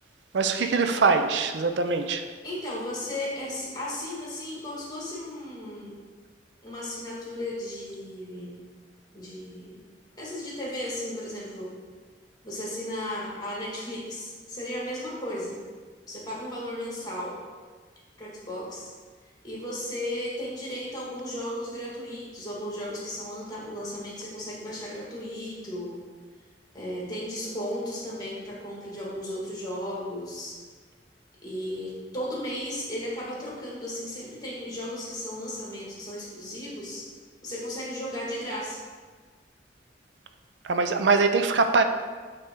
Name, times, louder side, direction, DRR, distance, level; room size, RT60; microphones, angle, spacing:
voice 1, 0.3-2.2 40.6-41.8, right 4 dB, 75° right, 7 dB, 0.5 m, -23 dB
voice 2, 2.4-6.0 6.6-8.6 9.1-9.8 10.2-11.7 12.4-15.6 16.1-17.4 18.2-18.9 19.4-26.0 26.7-30.6 31.4-37.1 37.4-38.8, left 1 dB, 20° left, -5 dB, 1.8 m, -35 dB
8.3 x 3.4 x 4.5 m, 1.5 s
head